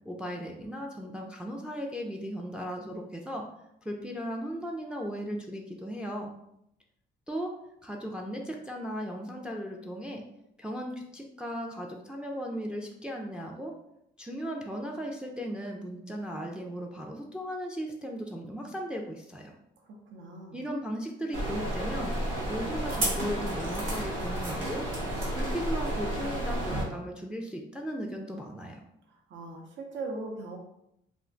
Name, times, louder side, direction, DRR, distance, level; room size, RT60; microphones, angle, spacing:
voice 1, 0.1-3.4 3.8-6.3 7.3-7.5 7.8-10.2 10.6-13.7 14.2-19.5 20.5-22.1 22.5-24.9 25.3-28.8, equal, 5° right, 1 dB, 0.3 m, -36 dB
voice 2, 19.8-20.6 29.1-30.6, right 3 dB, 70° right, 0 dB, 0.7 m, -40 dB
sound 1, 21.3-26.8, right 1 dB, 85° right, 1.1 m, -31 dB
2.4 x 2.2 x 3.7 m, 0.79 s
cardioid pair, 90°, 20 cm